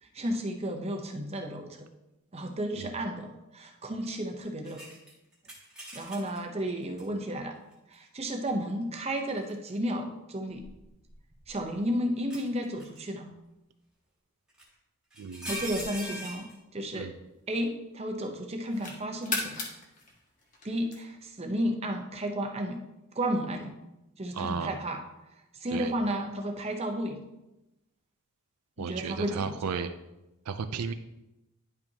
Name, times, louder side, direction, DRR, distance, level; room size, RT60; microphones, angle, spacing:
voice 1, 0.0-1.9 2.3-4.8 5.9-7.6 7.9-10.6 11.5-13.3 15.5-17.1 17.5-19.6 20.6-22.8 23.1-23.8 24.2-25.0 25.5-27.2 28.8-29.8, equal, 30° right, 4 dB, 0.8 m, -33 dB
sound 1, 4.6-6.4 7.0-7.1 9.1-9.7 10.6-11.7 12.3-13.0 14.6-14.7 15.1-16.6, right 1 dB, 5° right, 1.5 m, -41 dB
voice 2, 15.2-15.5 16.9-17.1 24.3-24.7 25.7-25.9 28.8-29.9 30.5-30.9, right 6 dB, 90° right, 10 dB, 0.5 m, -34 dB
sound 2, 16.6-17.9 18.4-21.4, left 3 dB, 35° left, 1.4 m, -38 dB
10.5 x 5.4 x 2.8 m, 0.94 s
head